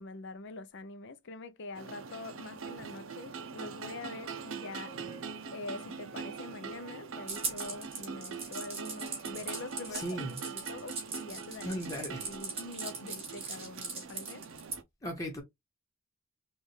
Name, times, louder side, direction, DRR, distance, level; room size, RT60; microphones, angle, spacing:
voice 1, 0.0-4.9 5.5-10.2 10.4-11.8 12.2-14.4, left 3 dB, 60° left, 0.6 m, -44 dB
sound 1, 1.7-14.8, right 5 dB, 70° right, 0.6 m, -43 dB
sound 2, 4.0-10.5, right 2 dB, 50° right, 2.3 m, -56 dB
sound 3, 7.3-14.8, right 4 dB, 30° right, 2.6 m, -39 dB
voice 2, 9.9-10.4 11.6-12.2 15.0-15.4, equal, 15° left, 1.1 m, -37 dB
5.3 x 2.5 x 3.1 m
head